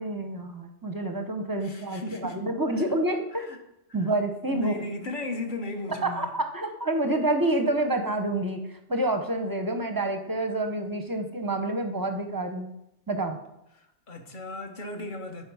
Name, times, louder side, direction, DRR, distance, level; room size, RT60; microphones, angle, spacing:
voice 1, 0.0-3.5 3.9-4.8 5.9-12.7 13.1-13.4, right 1 dB, 25° right, 6 dB, 0.5 m, -28 dB
voice 2, 1.6-2.4 2.8-2.9 3.3-3.6 4.0-4.1 4.5-6.3 13.7-15.5, left 2 dB, 45° left, 4 dB, 1.1 m, -36 dB
10.0 x 4.2 x 4.7 m, 0.84 s
omnidirectional pair, 1.2 m